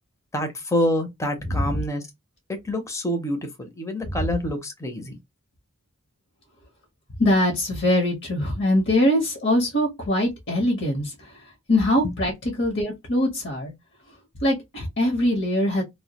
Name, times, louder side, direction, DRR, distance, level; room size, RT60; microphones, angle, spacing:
voice 1, 0.3-2.0 2.6-5.2 12.0-12.1, left 1 dB, 15° left, 0.5 m, -27 dB
voice 2, 1.4-1.8 4.1-4.3 7.2-11.1 11.7-12.3 12.6-13.7 14.4-15.8, left 1 dB, 55° left, 0.8 m, -22 dB
2.2 x 2.1 x 2.8 m
head